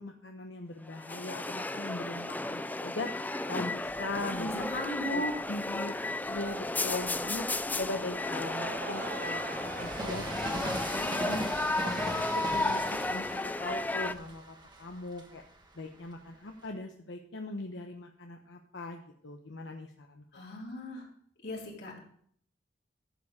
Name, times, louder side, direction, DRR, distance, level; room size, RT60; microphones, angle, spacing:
voice 1, 0.0-4.6 5.1-5.2 5.5-6.0 6.3-7.5 7.8-15.4 15.8-20.4, left 2 dB, 90° left, 3 dB, 1.0 m, -40 dB
sound 1, 0.9-14.1, left 2 dB, 10° left, 0.4 m, -33 dB
Train, 3.8-5.5 6.1-16.7, right 1 dB, 25° right, 1.4 m, -42 dB
voice 2, 4.4-5.4 20.3-21.1 21.4-22.0, equal, 60° left, -2 dB, 3.5 m, -36 dB
Laughter / Crowd, 8.2-14.3, right 3 dB, 50° right, 1.0 m, -45 dB
13.0 x 7.3 x 4.9 m, 0.62 s
head